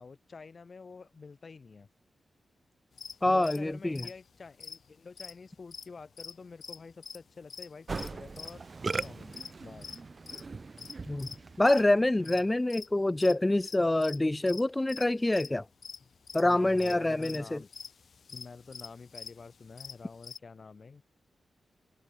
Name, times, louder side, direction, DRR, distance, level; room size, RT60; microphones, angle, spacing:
voice 1, 0.0-1.9 3.2-8.6 9.0-10.0 12.2-12.5 16.4-17.7 18.3-21.0, left 4 dB, 50° left, 3.0 m, -48 dB
sound 1, 2.9-6.3 6.6-11.8 12.2-14.6 14.9-15.1 15.3-15.5 15.8-20.4, left 6 dB, 65° left, 0.6 m, -45 dB
voice 2, 3.2-4.1 11.1-15.7 16.3-17.6, left 1 dB, 20° left, 0.4 m, -26 dB
Musical instrument, 7.9-12.1, right 4 dB, 45° right, 1.6 m, -39 dB
cardioid pair, 65°, 0 cm